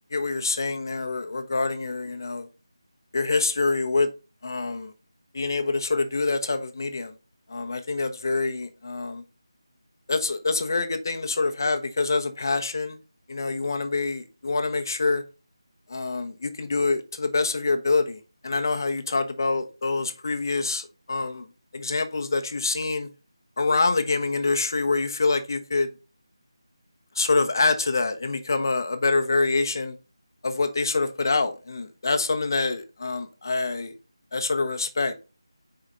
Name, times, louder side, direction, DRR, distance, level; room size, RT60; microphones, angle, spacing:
voice 1, 0.1-2.5 3.1-4.1 4.4-4.9 5.3-7.1 7.5-9.2 10.1-13.0 13.3-15.2 15.9-21.5 21.7-23.1 23.6-25.9 27.2-29.9 30.4-33.9 34.3-35.2, left 3 dB, 45° left, 1.0 m, -26 dB
7.4 x 4.9 x 2.6 m
figure-of-eight pair, 170°, 3 cm